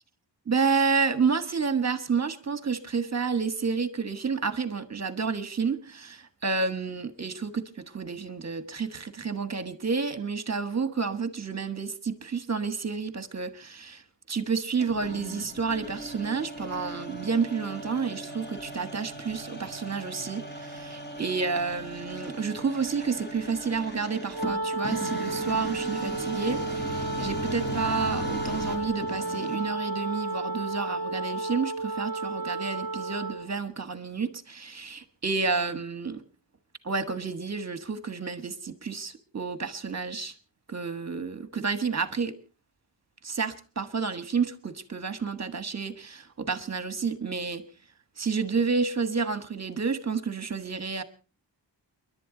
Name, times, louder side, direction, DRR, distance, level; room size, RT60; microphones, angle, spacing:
voice 1, 0.5-14.0 14.3-36.2 36.8-40.3 40.7-42.4 43.2-47.6 48.2-51.0, right 5 dB, 35° right, 1.4 m, -30 dB
sound 1, 14.8-29.8, equal, 20° left, 3.5 m, -38 dB
Wind instrument woodwind instrument, 24.3-33.5, right 2 dB, 50° right, 0.8 m, -32 dB
29.0 x 11.5 x 3.9 m
wide cardioid pair, 100°, 45 cm